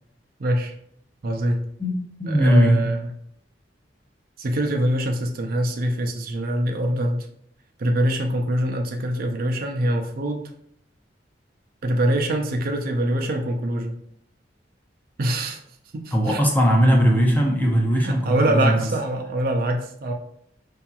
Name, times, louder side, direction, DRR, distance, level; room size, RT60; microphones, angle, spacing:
voice 1, 0.4-0.7 1.2-1.6 2.3-3.1 4.4-7.3 7.8-10.4 11.8-14.0 15.2-15.6 15.9-16.4 17.9-20.1, right 1 dB, 55° right, 3 dB, 0.5 m, -24 dB
voice 2, 2.2-2.9 16.1-18.8, equal, 10° left, -1 dB, 0.6 m, -18 dB
4.7 x 2.8 x 2.3 m, 0.69 s
head